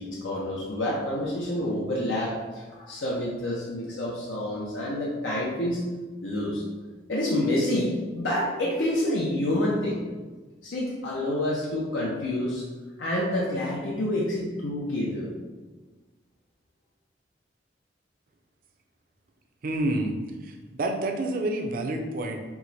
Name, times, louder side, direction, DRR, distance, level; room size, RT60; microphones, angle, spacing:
voice 1, 0.0-5.8 6.2-6.6 7.1-10.0 10.6-12.6 13.0-15.3, left 1 dB, 80° left, -5 dB, 0.7 m, -28 dB
voice 2, 19.6-20.1 20.4-22.4, right 1 dB, 50° right, 3 dB, 0.5 m, -28 dB
4.6 x 2.1 x 4.1 m, 1.3 s
head